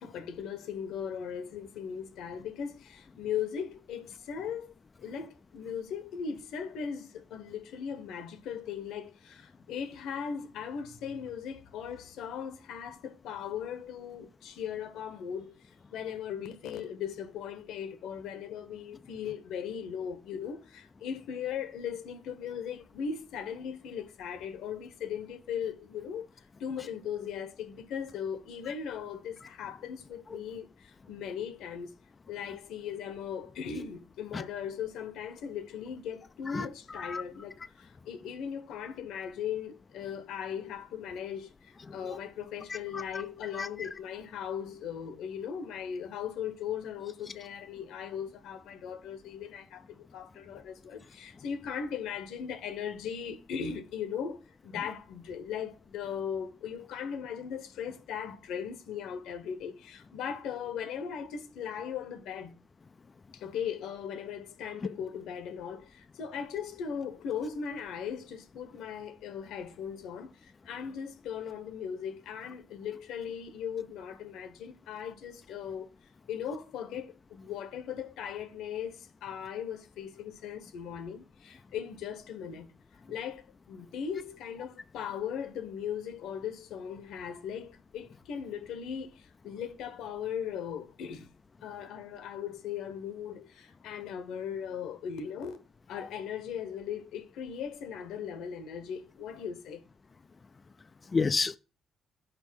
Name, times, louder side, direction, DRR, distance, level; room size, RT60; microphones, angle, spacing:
voice 1, 0.0-4.7 5.0-26.3 26.6-31.9 32.3-62.5 63.3-75.9 76.3-82.7 83.1-91.3 91.6-95.6 95.9-99.8, left 7 dB, 85° left, 1.0 m, -38 dB
voice 2, 36.5-37.2 42.9-43.0 43.5-43.9 96.0-96.1 101.1-101.6, left 4 dB, 30° left, 0.3 m, -31 dB
5.3 x 5.0 x 6.2 m
cardioid pair, 90°, 0 cm